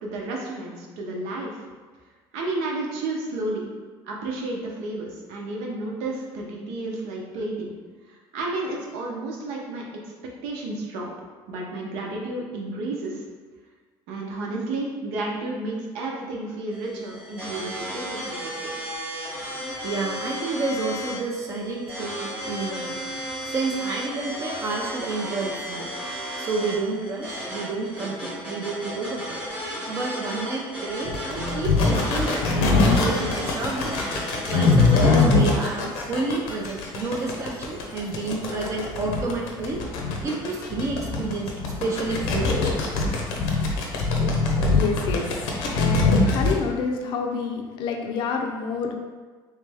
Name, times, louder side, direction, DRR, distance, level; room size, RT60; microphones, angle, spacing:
voice 1, 0.0-1.6 2.3-3.7 4.0-7.7 8.1-9.8 10.4-11.1 11.5-13.2 14.1-18.8, right 2 dB, 90° right, -1 dB, 0.9 m, -31 dB
sound 1, 16.7-35.3, equal, 10° right, 0.9 m, -34 dB
voice 2, 19.8-23.0 23.5-25.9 26.4-29.4 29.9-34.0 34.5-39.8 40.2-42.5, right 3 dB, 30° right, -1 dB, 0.4 m, -30 dB
sound 2, 31.1-46.6, left 3 dB, 80° left, 0.7 m, -22 dB
voice 3, 44.7-48.9, left 5 dB, 55° left, 2 dB, 0.5 m, -28 dB
3.3 x 3.2 x 3.4 m, 1.4 s
cardioid pair, 170°, 10 cm